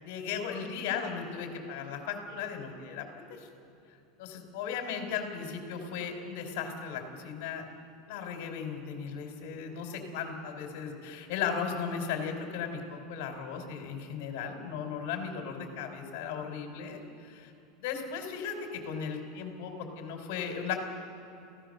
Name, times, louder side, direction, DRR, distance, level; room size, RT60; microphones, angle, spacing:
voice 1, 0.0-3.5 4.2-7.6 8.1-17.5 17.8-20.8, left 6 dB, 60° left, 4 dB, 4.2 m, -36 dB
27.5 x 16.5 x 6.7 m, 2.7 s
supercardioid pair, 165°, 0 cm